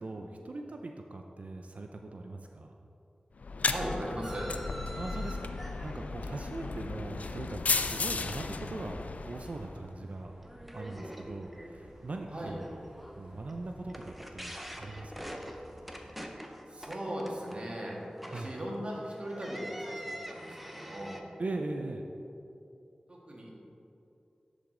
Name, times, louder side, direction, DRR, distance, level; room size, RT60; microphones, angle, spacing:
voice 1, 0.0-2.8 5.0-10.3 10.7-12.7 13.2-15.4 18.3-18.5 21.4-22.1, right 2 dB, 60° right, 3 dB, 0.4 m, -40 dB
sound 1, 3.4-9.8, left 4 dB, 70° left, 0.3 m, -34 dB
voice 2, 3.6-4.5 12.3-12.5 16.7-18.0 18.3-21.2 23.1-23.5, right 1 dB, 45° right, -3 dB, 1.6 m, -38 dB
sound 2, 4.2-7.6 7.8-8.6 9.0-9.4 9.8-9.9 10.4-21.2, equal, 5° right, 0.7 m, -46 dB
sound 3, 5.3-16.1, right 1 dB, 80° right, 1.6 m, -54 dB
10.5 x 5.0 x 3.8 m, 2.7 s
wide cardioid pair, 70°, 3 cm